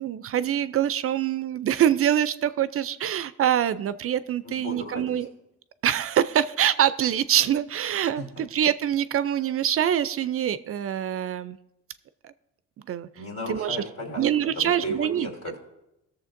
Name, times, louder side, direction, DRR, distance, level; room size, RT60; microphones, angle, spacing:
voice 1, 0.0-5.3 5.8-11.6 12.2-12.3 12.9-13.1 13.5-13.8 14.2-15.3, right 10 dB, 50° right, 14 dB, 0.4 m, -24 dB
voice 2, 4.4-5.2 8.1-8.4 13.1-14.2 14.5-15.6, equal, 60° left, 0 dB, 3.1 m, -35 dB
19.0 x 7.0 x 2.6 m, 0.90 s
cardioid pair, 90°, 30 cm